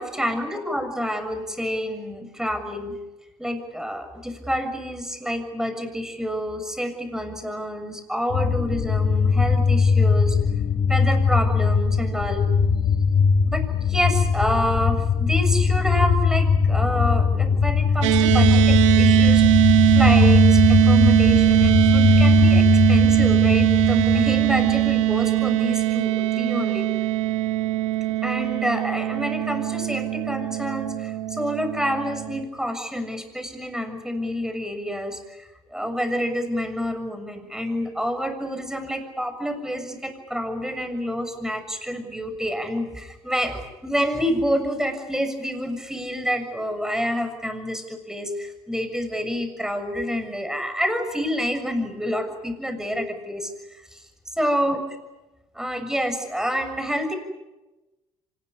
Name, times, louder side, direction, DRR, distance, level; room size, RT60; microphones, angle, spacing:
voice 1, 0.0-3.0 3.4-10.4 10.9-12.5 13.2-26.9 28.2-53.5 53.9-54.0 54.4-54.8 55.6-57.1, equal, 5° right, 7 dB, 6.9 m, -28 dB
sound 1, 8.3-25.1, left 5 dB, 55° left, 1.6 m, -20 dB
sound 2, 18.0-32.4, right 16 dB, 90° right, 1.5 m, -20 dB
25.5 x 20.5 x 10.0 m, 1.1 s
hypercardioid pair, 65°, 16 cm